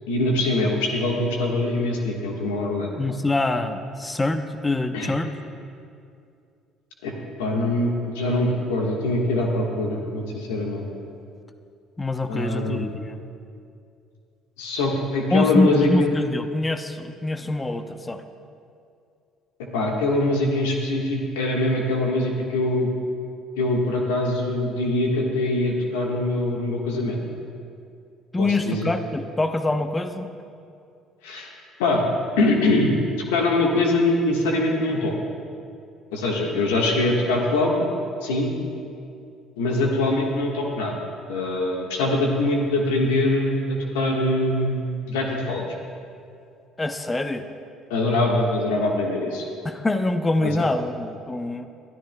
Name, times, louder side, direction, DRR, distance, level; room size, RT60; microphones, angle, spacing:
voice 1, 0.1-3.0 4.9-5.1 7.0-7.1 7.4-10.8 12.3-12.9 14.6-16.1 19.7-22.9 23.6-27.2 28.4-28.9 31.2-31.5 31.8-32.0 32.4-32.9 33.3-35.1 36.1-37.9 38.2-38.5 39.6-40.9 41.3-45.6 47.9-49.5 50.4-50.7, left 2 dB, 80° left, 0 dB, 1.4 m, -23 dB
voice 2, 3.0-5.4 12.0-13.2 15.3-18.2 28.3-30.3 46.8-47.5 49.6-51.7, left 2 dB, 20° left, 9 dB, 0.7 m, -25 dB
23.0 x 12.5 x 2.2 m, 2.5 s
hypercardioid pair, 55°, 0 cm